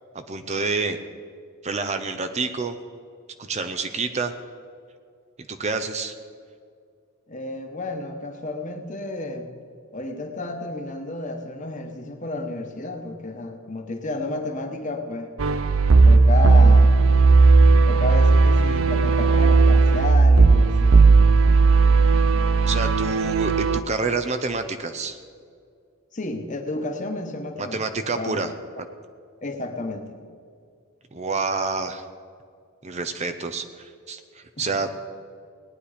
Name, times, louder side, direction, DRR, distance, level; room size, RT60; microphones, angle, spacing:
voice 1, 0.1-1.0 1.6-2.8 3.5-4.3 5.5-6.2 22.6-25.2 27.6-28.5 28.8-28.9 31.1-32.0 32.8-35.0, right 4 dB, 30° right, 8 dB, 0.6 m, -28 dB
voice 2, 7.3-9.5 9.9-15.3 16.0-17.0 17.9-21.0 26.1-28.4 29.4-30.2 34.6-34.7, left 2 dB, 35° left, 4 dB, 1.2 m, -31 dB
sound 1, 15.4-23.8, right 3 dB, 75° right, 0.6 m, -15 dB
18.0 x 10.0 x 5.0 m, 2.2 s
head